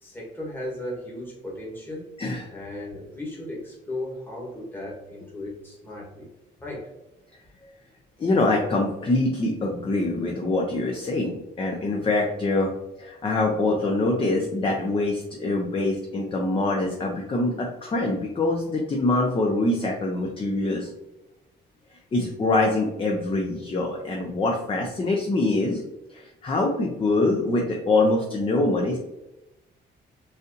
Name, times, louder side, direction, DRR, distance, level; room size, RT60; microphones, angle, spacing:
voice 1, 0.0-2.1 2.5-6.3 6.6-6.9, left 1 dB, 10° left, -4 dB, 1.2 m, -36 dB
voice 2, 2.2-2.5 8.2-12.7 13.0-20.9 22.1-25.8 26.1-29.0, left 2 dB, 30° left, 0 dB, 0.5 m, -24 dB
4.0 x 2.7 x 2.5 m, 0.96 s
cardioid pair, 90°, 20 cm